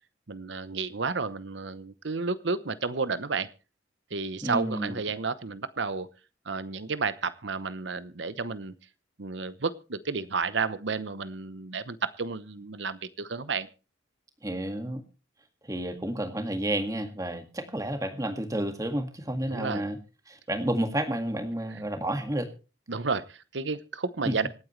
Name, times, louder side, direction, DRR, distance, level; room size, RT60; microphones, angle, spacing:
voice 1, 0.3-3.5 4.1-6.1 6.4-8.7 9.2-13.7 19.5-19.8 22.9-24.5, right 4 dB, 75° right, 15 dB, 0.9 m, -31 dB
voice 2, 4.4-5.0 14.4-15.0 15.6-20.0 20.3-22.5 24.3-24.4, right 1 dB, 20° right, 6 dB, 1.9 m, -30 dB
26.0 x 9.0 x 3.2 m, 0.33 s
head